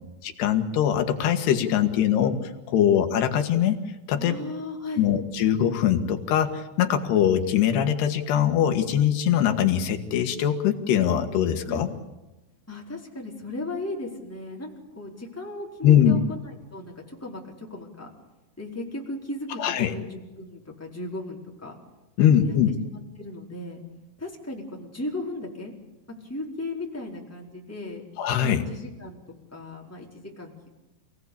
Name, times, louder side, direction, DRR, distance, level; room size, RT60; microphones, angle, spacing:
voice 1, 0.2-2.4 2.7-3.8 4.1-4.4 5.0-11.9 15.8-16.2 19.6-19.9 22.2-22.7 28.2-28.7, left 9 dB, 75° left, 6 dB, 3.7 m, -22 dB
voice 2, 4.2-5.1 11.6-11.9 12.7-18.1 18.6-21.8 22.2-22.6 22.9-23.8 24.2-25.7 26.3-28.0 28.4-29.2 29.5-30.7, left 2 dB, 5° left, -2 dB, 3.8 m, -36 dB
28.0 x 18.0 x 8.6 m, 1.0 s
omnidirectional pair, 4.8 m